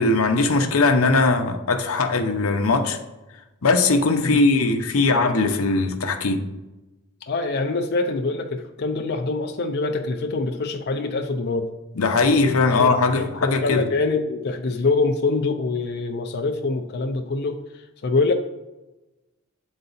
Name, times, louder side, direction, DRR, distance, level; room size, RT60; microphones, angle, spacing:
voice 1, 0.0-3.0 3.6-6.5 12.0-13.8, left 3 dB, 90° left, 0.8 m, -20 dB
voice 2, 7.2-11.7 12.8-18.3, left 3 dB, 50° left, 0.5 m, -25 dB
8.0 x 4.0 x 4.0 m
head